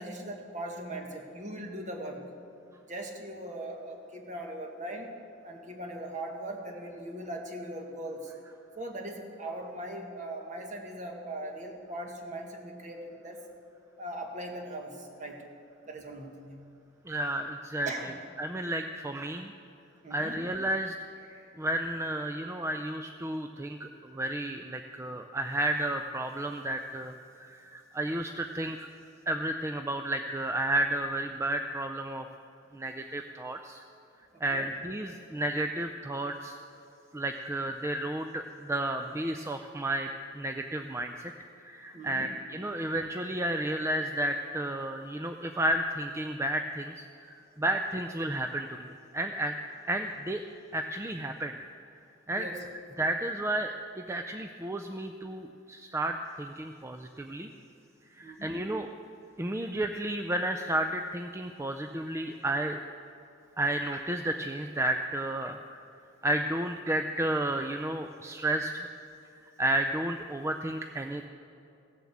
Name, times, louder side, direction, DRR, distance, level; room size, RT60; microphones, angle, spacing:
voice 1, 0.0-2.2 2.9-5.1 5.4-8.3 8.8-13.4 14.0-15.4 15.9-16.6 17.8-18.1 20.0-20.4 34.3-34.7 41.9-42.3 52.3-52.6 58.2-58.6, right 1 dB, 40° right, 2 dB, 1.6 m, -40 dB
voice 2, 17.1-17.9 18.4-19.5 20.1-20.9 21.2-28.9 29.3-32.3 32.7-33.8 34.4-36.6 37.1-41.3 41.6-48.9 49.1-49.6 49.9-50.4 50.7-51.6 52.3-52.5 53.0-57.5 58.2-58.9 59.4-62.8 63.6-65.8 66.2-68.9 69.6-71.3, right 1 dB, 15° right, 5 dB, 0.4 m, -32 dB
16.0 x 7.5 x 7.2 m, 2.6 s
head